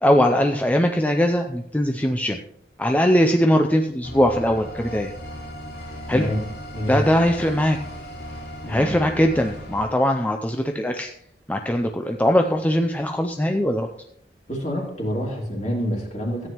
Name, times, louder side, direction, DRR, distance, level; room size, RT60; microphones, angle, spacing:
voice 1, 0.0-2.4 2.8-5.1 6.1-6.3 6.9-7.8 8.7-11.1 11.5-13.9, equal, 10° left, 4 dB, 0.5 m, -20 dB
sound 1, 4.0-9.9, equal, 80° left, 3.7 m, -37 dB
voice 2, 6.1-6.4 6.7-7.1 8.6-9.0 14.5-16.5, equal, 40° left, -1 dB, 2.7 m, -27 dB
14.0 x 9.1 x 3.0 m, 0.69 s
head